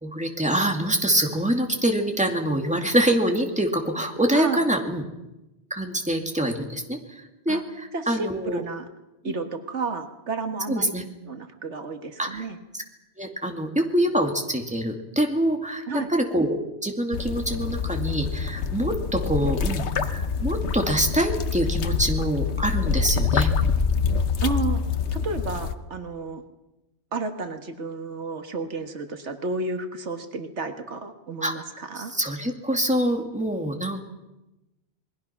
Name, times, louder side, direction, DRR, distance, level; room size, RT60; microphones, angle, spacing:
voice 1, 0.0-5.0 5.7-8.6 9.2-9.3 10.7-11.0 12.2-12.5 12.7-12.8 13.2-23.5 31.4-34.0, right 1 dB, 5° right, 3 dB, 2.4 m, -25 dB
voice 2, 4.3-4.6 7.5-7.6 7.9-8.9 9.2-10.9 11.3-12.6 15.9-16.1 24.4-24.8 25.1-26.4 27.1-32.1, right 3 dB, 90° right, 7 dB, 1.9 m, -31 dB
sound 1, 17.1-25.7, left 5 dB, 80° left, 1.3 m, -26 dB
27.5 x 21.0 x 5.9 m, 0.99 s
omnidirectional pair, 1.1 m